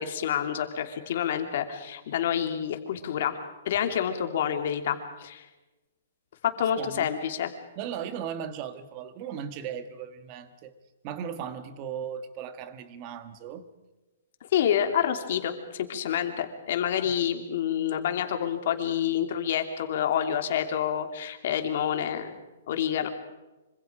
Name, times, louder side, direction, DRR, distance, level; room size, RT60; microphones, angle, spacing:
voice 1, 0.0-3.4 3.6-5.5 6.4-7.5 14.5-22.3 22.7-23.1, left 9 dB, 50° left, 6 dB, 2.9 m, -28 dB
voice 2, 6.8-7.1 7.8-10.7 11.0-13.7, right 8 dB, 30° right, 11 dB, 1.6 m, -37 dB
26.0 x 26.0 x 5.0 m, 1.1 s
hypercardioid pair, 165°, 0 cm